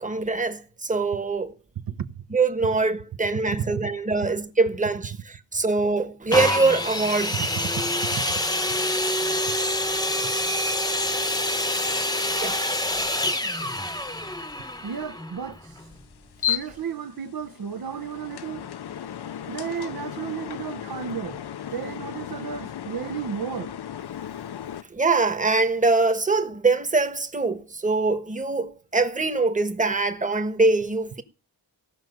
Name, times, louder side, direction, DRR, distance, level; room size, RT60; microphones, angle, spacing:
voice 1, 0.0-1.5 2.3-7.4 12.4-12.6 24.9-31.2, right 3 dB, 20° right, 1.4 m, -23 dB
voice 2, 1.9-2.2 3.5-3.7 7.3-8.4 14.8-15.9 16.4-18.7 19.5-21.4 21.7-23.7, right 7 dB, 60° right, 1.0 m, -33 dB
sound 1, 6.3-16.0 16.7-16.8, left 1 dB, 10° left, 1.0 m, -26 dB
sound 2, 15.8-24.8, left 10 dB, 75° left, 0.9 m, -35 dB
16.5 x 6.4 x 9.3 m
wide cardioid pair, 165°, 40 cm